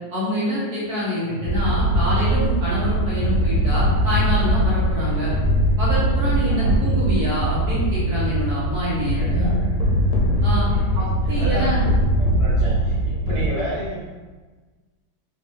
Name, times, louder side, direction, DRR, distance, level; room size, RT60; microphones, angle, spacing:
voice 1, 0.1-5.3 5.8-9.5 10.4-10.6 10.9-11.8, equal, 55° right, -8 dB, 1.5 m, -26 dB
sound 1, 0.8-10.9, right 2 dB, 85° right, 1.6 m, -41 dB
voice 2, 1.2-1.5 3.0-3.2 5.0-5.3 6.5-6.8 9.2-9.7 10.3-11.1 11.3-11.6 12.2-14.1, right 1 dB, 45° left, -12 dB, 0.4 m, -32 dB
sound 2, 1.4-13.5, right 1 dB, 80° left, 1.4 m, -21 dB
3.6 x 2.6 x 3.5 m, 1.4 s
omnidirectional pair, 2.3 m